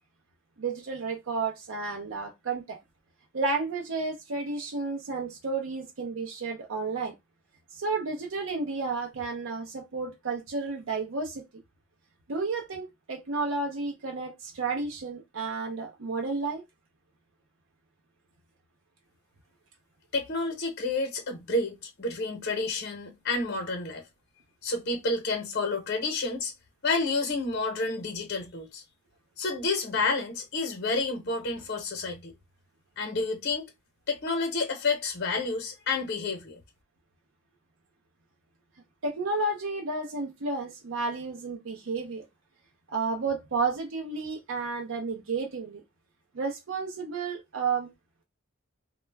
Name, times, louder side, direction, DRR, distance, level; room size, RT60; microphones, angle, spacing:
voice 1, 0.6-2.8 3.3-7.1 7.7-11.4 12.3-16.6 39.0-42.3 42.9-45.8 46.3-47.9, right 4 dB, 80° right, 0.6 m, -32 dB
voice 2, 20.1-24.0 24.6-26.5 26.8-28.8 29.4-32.3 33.0-33.7 34.1-36.6, left 3 dB, 55° left, 0.8 m, -30 dB
2.2 x 2.1 x 3.3 m
head